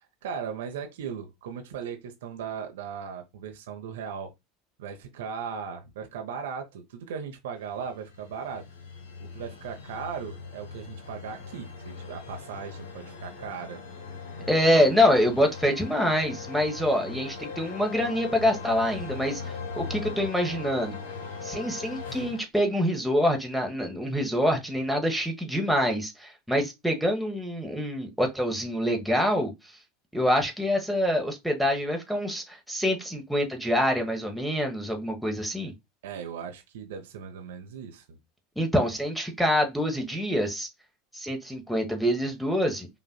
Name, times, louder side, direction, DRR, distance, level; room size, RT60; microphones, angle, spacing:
voice 1, 0.2-4.3 4.8-8.6 9.2-13.8 14.4-15.0 36.0-38.2, right 6 dB, 65° right, 0.8 m, -37 dB
sound 1, 7.7-22.4, left 5 dB, 70° left, 1.0 m, -40 dB
voice 2, 14.5-19.4 19.8-21.0 21.4-29.5 30.1-35.7 38.6-40.7 41.1-42.9, equal, ahead, 1.1 m, -25 dB
5.2 x 2.5 x 2.2 m
figure-of-eight pair, 80°, 0 cm